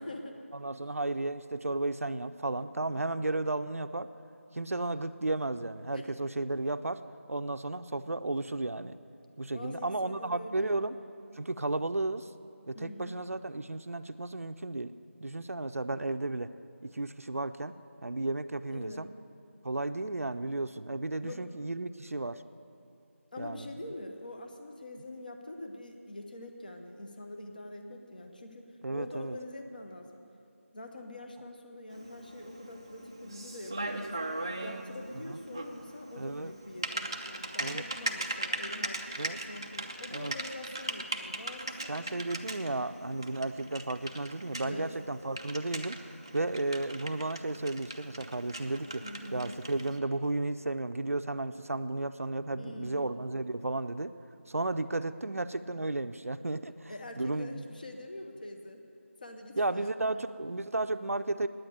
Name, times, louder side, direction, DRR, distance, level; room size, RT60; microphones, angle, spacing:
voice 1, 0.0-0.4 2.9-3.0 5.9-6.1 9.5-11.0 12.7-13.2 18.7-19.1 21.2-21.4 23.3-30.2 30.7-34.3 34.6-42.1 44.6-44.9 49.0-49.3 52.6-53.0 56.9-58.8 59.2-60.2, left 1 dB, 40° left, 4 dB, 0.9 m, -44 dB
voice 2, 0.5-4.1 4.5-7.0 7.3-8.9 9.4-11.0 11.4-12.3 12.7-14.9 15.2-16.5 16.8-17.7 18.0-19.1 19.6-22.4 23.4-23.7 28.8-29.4 35.3-35.4 36.2-36.5 37.6-37.8 39.2-39.4 40.1-40.3 41.9-46.0 46.3-49.0 49.3-54.1 54.5-57.6 59.6-61.5, right 2 dB, 85° right, 11 dB, 0.5 m, -33 dB
Typing, 31.9-50.0, right 2 dB, 20° right, 0.4 m, -40 dB
9.3 x 8.9 x 9.2 m, 2.5 s
figure-of-eight pair, 175°, 7 cm